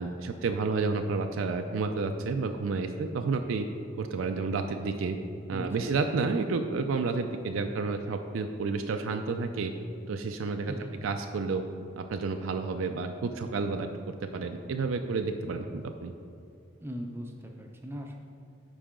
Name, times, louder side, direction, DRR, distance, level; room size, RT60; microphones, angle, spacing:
voice 1, 0.0-3.6 4.0-5.2 5.5-9.7 10.1-10.7 11.0-11.6 12.0-13.9 14.3-16.1, right 4 dB, 90° right, 5 dB, 0.4 m, -30 dB
voice 2, 5.5-5.9 10.7-11.0 16.8-18.1, equal, 10° right, 2 dB, 0.5 m, -39 dB
10.0 x 4.8 x 3.7 m, 2.6 s
head